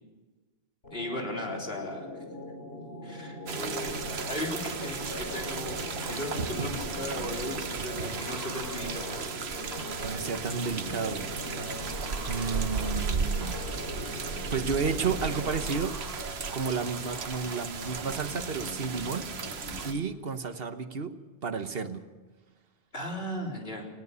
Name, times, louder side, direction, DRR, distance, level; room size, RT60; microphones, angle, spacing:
sound 1, 0.8-16.0, left 1 dB, 85° left, 3.7 m, -41 dB
voice 1, 0.9-2.1 3.0-4.0 4.3-9.1 22.9-23.8, left 1 dB, 70° left, 0 dB, 4.0 m, -36 dB
sound 2, 3.5-19.9, right 5 dB, 85° right, 1.4 m, -35 dB
sound 3, 5.1-19.8, left 1 dB, 20° left, 3.2 m, -44 dB
voice 2, 10.0-11.3 12.3-13.6 14.5-16.0 16.5-19.3 19.8-21.1 21.4-22.0, right 5 dB, 70° right, 9 dB, 1.3 m, -32 dB
20.5 x 18.0 x 7.0 m, 1.3 s
omnidirectional pair, 1.0 m